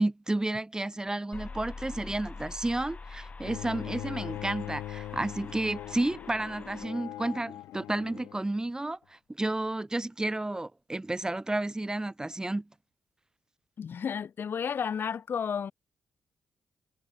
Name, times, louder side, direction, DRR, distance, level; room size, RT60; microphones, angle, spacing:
voice 1, 0.0-12.7, right 2 dB, 15° right, 1.5 m, -31 dB
sound 1, 1.3-6.9, left 4 dB, 35° left, 2.2 m, -45 dB
Bowed string instrument, 3.4-8.5, left 14 dB, 90° left, 2.2 m, -41 dB
voice 2, 13.8-15.7, left 7 dB, 60° left, 1.6 m, -32 dB
supercardioid pair, 55°, 4 cm